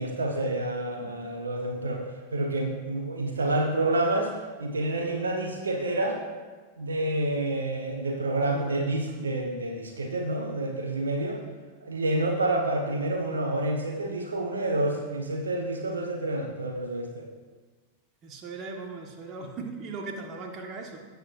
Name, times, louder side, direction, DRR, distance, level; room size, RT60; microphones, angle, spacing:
voice 1, 0.0-2.0 2.3-4.3 4.6-6.2 6.8-11.4 11.8-17.3, right 2 dB, 70° right, 2 dB, 1.1 m, -28 dB
voice 2, 18.2-21.0, right 4 dB, 30° right, 2 dB, 1.5 m, -38 dB
17.0 x 8.1 x 2.6 m, 1.3 s
figure-of-eight pair, 90°, 0 cm